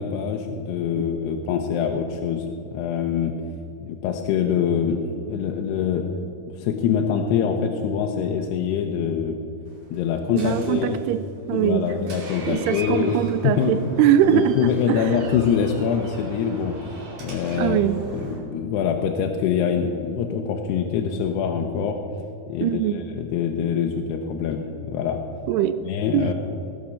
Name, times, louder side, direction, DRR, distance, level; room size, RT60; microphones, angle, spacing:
voice 1, 0.0-2.5 2.7-3.4 3.8-6.1 6.4-9.4 9.9-11.0 11.5-13.7 14.2-16.8 17.2-17.8 18.1-22.0 22.5-25.2 25.9-26.3, left 7 dB, 85° left, 3 dB, 2.8 m, -24 dB
Door, 9.7-18.4, right 2 dB, 45° right, 3.6 m, -39 dB
voice 2, 10.3-11.8 12.5-15.1 17.6-18.0 22.6-23.0 25.5-25.8 26.1-26.3, right 10 dB, 85° right, 12 dB, 2.5 m, -22 dB
18.5 x 7.3 x 6.4 m, 2.7 s
omnidirectional pair, 4.7 m